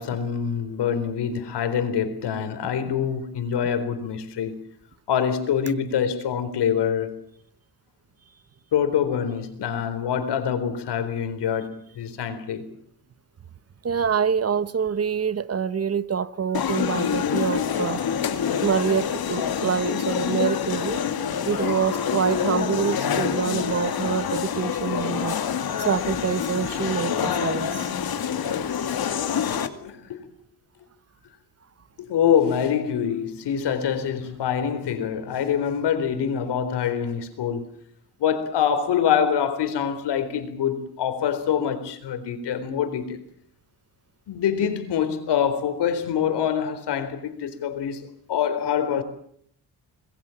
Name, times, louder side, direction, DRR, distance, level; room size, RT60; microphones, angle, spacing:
voice 1, 0.0-4.6 5.1-7.2 8.7-12.7 18.6-18.7 26.6-27.1 28.8-28.9 29.8-30.2 32.0-37.7 38.2-43.2 44.3-48.0 48.3-49.0, left 8 dB, 90° left, 4.2 m, -25 dB
voice 2, 13.8-18.0 18.6-21.0 21.5-25.4 25.8-27.9, right 7 dB, 35° right, 1.1 m, -26 dB
sound 1, 16.5-29.7, left 8 dB, 65° left, 2.5 m, -26 dB
26.0 x 21.0 x 7.2 m
cardioid pair, 120°, 40 cm